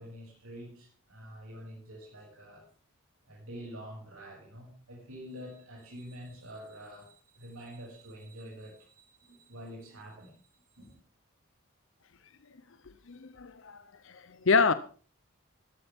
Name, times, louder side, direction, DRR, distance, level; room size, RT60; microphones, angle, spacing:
voice 1, 0.0-2.6 3.2-10.9, equal, 80° right, 6.7 m, -47 dB
voice 2, 13.1-14.7, left 4 dB, 60° left, 0.8 m, -27 dB
16.0 x 13.5 x 3.6 m
head